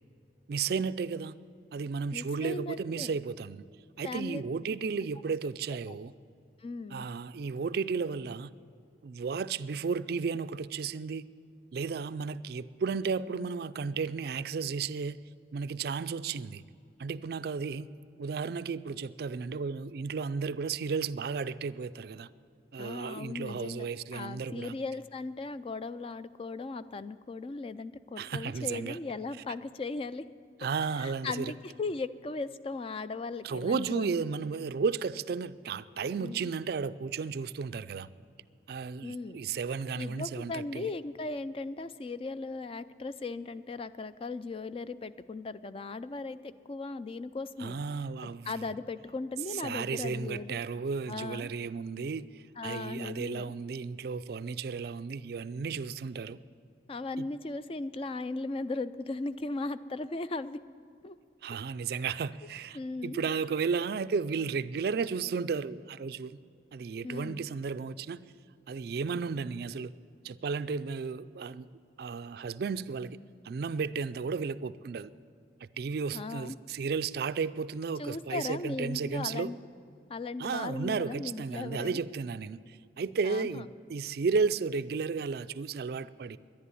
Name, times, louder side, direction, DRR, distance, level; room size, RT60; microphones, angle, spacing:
voice 1, 0.5-1.4 1.7-3.6 4.0-6.1 6.9-8.5 9.0-11.3 11.7-15.2 15.5-16.6 17.0-17.9 18.2-22.3 22.7-24.8 28.2-29.0 30.6-31.5 33.4-38.1 38.7-40.9 47.6-48.7 49.5-56.4 57.2-57.3 61.4-66.4 66.7-68.2 68.7-69.9 70.2-71.7 72.0-73.2 73.4-75.1 75.6-79.5 80.4-86.4, right 5 dB, 55° right, 0.4 m, -33 dB
voice 2, 2.1-3.2 4.0-4.4 5.9-6.0 6.6-7.1 22.8-30.3 30.9-34.1 36.2-36.5 39.0-39.4 40.0-47.8 48.2-50.6 51.1-51.5 52.6-53.5 56.9-60.6 61.0-61.2 62.7-63.2 67.0-67.4 76.1-76.6 78.0-79.6 80.1-82.0 83.2-83.7, left 3 dB, 30° left, 0.3 m, -37 dB
11.0 x 11.0 x 9.7 m
head